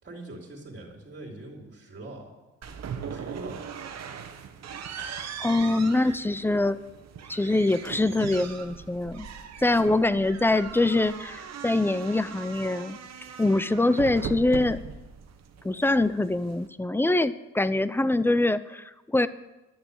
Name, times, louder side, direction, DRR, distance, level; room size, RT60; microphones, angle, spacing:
voice 1, 0.0-2.3 3.0-3.7 9.8-10.0, right 1 dB, 35° right, -2 dB, 3.2 m, -42 dB
sound 1, 2.6-16.7, right 7 dB, 60° right, 1.3 m, -40 dB
voice 2, 5.4-6.8 7.3-9.3 9.6-13.0 13.4-14.8 15.6-19.3, left 2 dB, 5° left, 15 dB, 0.5 m, -24 dB
11.5 x 6.8 x 8.5 m, 1.1 s
cardioid pair, 90°, 30 cm